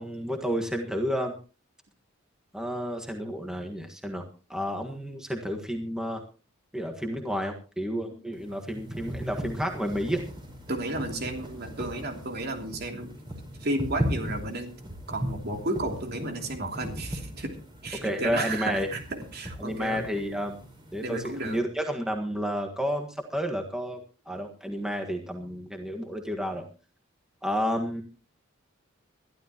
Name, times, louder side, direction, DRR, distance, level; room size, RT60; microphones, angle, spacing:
voice 1, 0.0-1.3 2.5-4.2 4.5-6.2 6.7-10.2 17.9-18.9 19.6-20.6 20.9-26.6 27.4-28.0, equal, 5° right, 2 dB, 1.6 m, -31 dB
sound 1, 8.3-21.6, equal, 25° right, 4.9 m, -38 dB
voice 2, 10.7-13.1 13.6-14.7 15.1-17.6 17.8-20.0 21.0-21.6, right 2 dB, 50° right, 4 dB, 3.0 m, -32 dB
21.5 x 12.5 x 3.0 m, 0.34 s
head